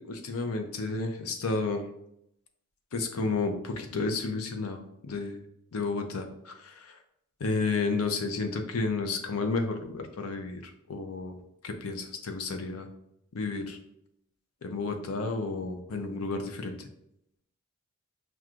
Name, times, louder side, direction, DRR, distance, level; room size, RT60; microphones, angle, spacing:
voice 1, 0.0-1.9 2.9-5.4 5.7-7.0 7.4-10.6 10.9-11.4 11.6-12.9 13.3-13.8 14.6-16.9, left 3 dB, 90° left, 6 dB, 0.6 m, -31 dB
5.9 x 2.3 x 2.4 m, 0.78 s
head